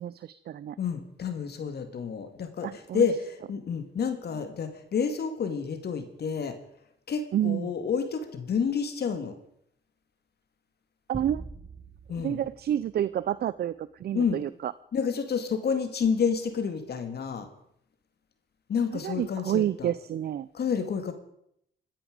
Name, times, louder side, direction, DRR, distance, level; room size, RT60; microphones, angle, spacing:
voice 1, 0.0-0.8 2.6-3.1 7.3-7.7 11.1-11.4 12.2-13.7 14.0-14.7 19.0-20.5, right 11 dB, 55° right, 17 dB, 0.5 m, -29 dB
voice 2, 0.8-6.6 7.1-9.4 12.1-12.4 14.1-14.4 14.9-17.5 18.7-19.9 20.5-21.1, left 6 dB, 55° left, 8 dB, 2.1 m, -29 dB
sound 1, 11.1-13.7, right 3 dB, 20° right, 1.5 m, -44 dB
25.5 x 10.0 x 5.2 m, 0.73 s
cardioid pair, 90°, 20 cm